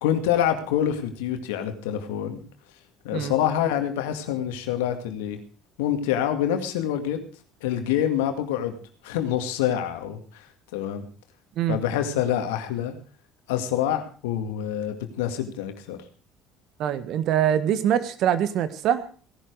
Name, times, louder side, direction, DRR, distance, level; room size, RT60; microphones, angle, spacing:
voice 1, 0.0-2.4 3.0-5.4 5.8-7.2 7.6-8.8 9.0-10.4 10.7-11.1 11.7-12.9 13.5-16.0, left 10 dB, 90° left, 7 dB, 2.2 m, -26 dB
voice 2, 16.8-19.1, right 10 dB, 65° right, 13 dB, 1.5 m, -23 dB
17.0 x 11.5 x 4.8 m, 0.40 s
supercardioid pair, 80°, 0 cm